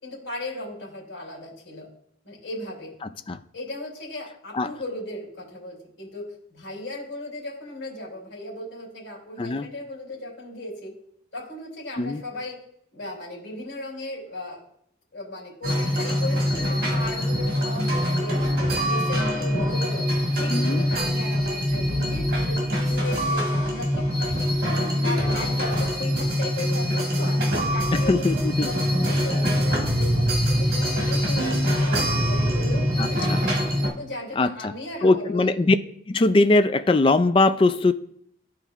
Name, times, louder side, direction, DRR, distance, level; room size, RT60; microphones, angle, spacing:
voice 1, 0.0-1.9 2.2-2.9 3.5-10.9 11.3-12.6 12.9-14.6 15.1-18.4 18.8-20.1 20.3-24.5 25.0-28.2 28.7-33.2 34.0-35.5, left 1 dB, 85° left, -3 dB, 2.9 m, -36 dB
voice 2, 3.0-3.4 4.5-4.7 9.4-9.7 12.0-12.2 20.5-20.8 27.9-28.7 33.0-33.4 34.4-34.7 35.0-35.8 36.1-37.9, left 2 dB, 25° left, 11 dB, 0.3 m, -21 dB
sound 1, 15.6-33.9, equal, 50° right, 1.6 m, -24 dB
13.0 x 4.5 x 2.4 m, 0.70 s
head